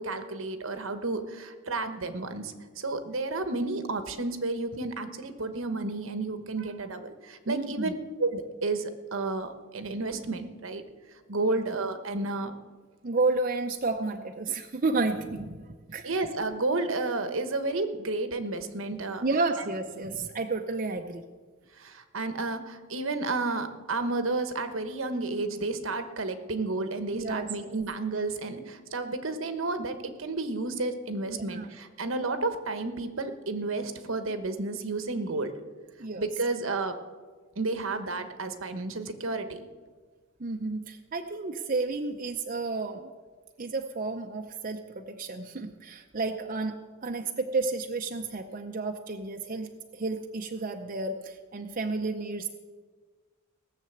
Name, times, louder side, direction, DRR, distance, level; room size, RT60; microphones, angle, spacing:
voice 1, 0.0-10.8 11.3-12.5 16.0-19.2 21.7-35.5 36.2-36.9 37.6-39.7, right 3 dB, 70° right, 9 dB, 1.1 m, -31 dB
voice 2, 7.5-7.9 11.4-11.5 13.0-16.1 19.2-21.2 27.1-27.5 31.3-31.7 36.0-36.3 40.4-43.1 43.6-46.8 47.0-52.5, right 3 dB, 40° right, 4 dB, 0.6 m, -31 dB
17.5 x 6.7 x 7.9 m, 1.4 s
head